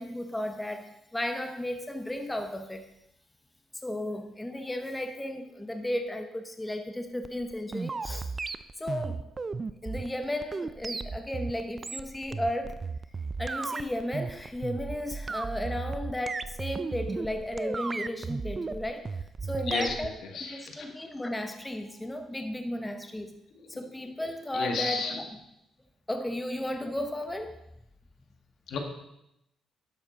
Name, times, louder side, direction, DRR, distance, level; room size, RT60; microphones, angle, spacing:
voice 1, 0.0-2.8 3.8-8.3 8.8-9.3 9.8-12.8 13.4-19.0 19.4-20.1 20.5-23.3 23.7-25.1 26.1-27.6, left 1 dB, 10° left, 6 dB, 0.8 m, -34 dB
sound 1, 7.2-20.1, right 4 dB, 30° right, 0.4 m, -35 dB
voice 2, 20.3-20.7 23.6-23.7 24.5-25.2 28.7-28.8, left 4 dB, 70° left, 3 dB, 1.8 m, -32 dB
11.0 x 7.3 x 4.0 m, 0.83 s
cardioid pair, 90°, 0 cm